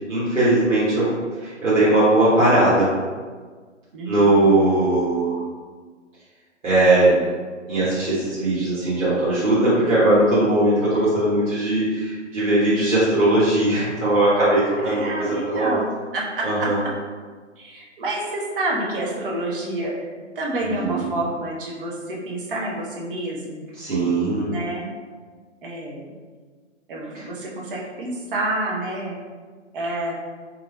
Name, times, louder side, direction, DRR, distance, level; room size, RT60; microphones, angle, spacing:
voice 1, 0.1-1.1 1.4-2.9 4.0-5.4 6.6-7.2 7.7-15.8 16.4-16.8 20.8-21.0 23.8-24.5, right 1 dB, 90° right, -11 dB, 1.4 m, -19 dB
voice 2, 3.9-4.4 14.8-15.8 16.1-16.7 17.6-23.7 24.4-24.9 25.6-26.1 26.9-29.2 29.7-30.1, right 2 dB, 45° right, -3 dB, 0.9 m, -28 dB
3.8 x 3.1 x 2.4 m, 1.5 s
figure-of-eight pair, 135°, 37 cm